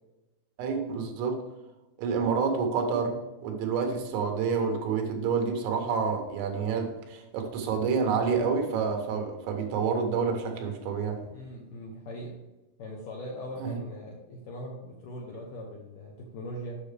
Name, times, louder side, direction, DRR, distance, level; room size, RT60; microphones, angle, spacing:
voice 1, 0.6-1.4 2.0-11.2 13.6-13.8, right 5 dB, 85° right, 4 dB, 3.6 m, -28 dB
voice 2, 11.3-12.4 12.8-16.8, equal, 75° left, -1 dB, 2.0 m, -40 dB
8.7 x 6.6 x 3.4 m, 1.1 s
omnidirectional pair, 5.2 m